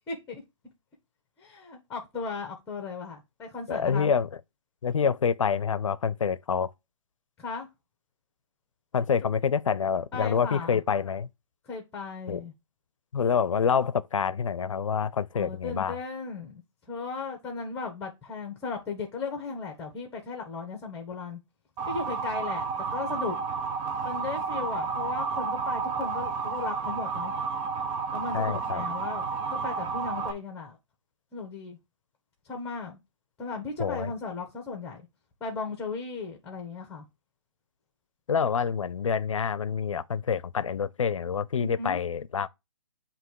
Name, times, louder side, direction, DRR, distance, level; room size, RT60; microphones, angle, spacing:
voice 1, 0.1-0.4 1.4-4.1 7.4-7.7 10.1-10.8 11.6-12.5 15.3-16.6 16.9-21.4 21.9-23.4 24.0-27.3 28.1-29.2 29.5-30.8 31.3-31.8 32.4-33.0 33.4-35.1 35.4-37.0 41.6-42.0, left 4 dB, 15° left, 1.3 m, -36 dB
voice 2, 3.7-4.3 4.8-6.7 8.9-11.3 12.3-12.4 13.1-16.0 28.3-28.8 33.8-34.1 38.3-42.5, left 6 dB, 80° left, 0.6 m, -27 dB
Motor vehicle (road) / Siren, 21.8-30.3, right 5 dB, 20° right, 0.6 m, -31 dB
7.7 x 3.0 x 4.7 m
hypercardioid pair, 150°, 16 cm